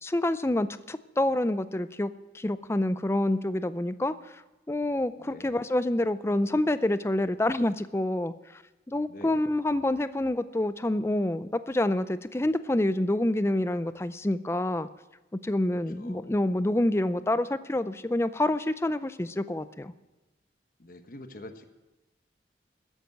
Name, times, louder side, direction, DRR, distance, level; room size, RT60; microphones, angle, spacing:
voice 1, 0.0-4.4 4.7-8.6 8.9-14.9 15.4-19.9, left 1 dB, 15° left, 13 dB, 0.4 m, -27 dB
voice 2, 5.2-5.5 9.1-9.4 16.0-16.3 20.8-21.6, left 1 dB, 50° left, 7 dB, 1.1 m, -45 dB
12.5 x 8.2 x 8.1 m, 1.1 s
head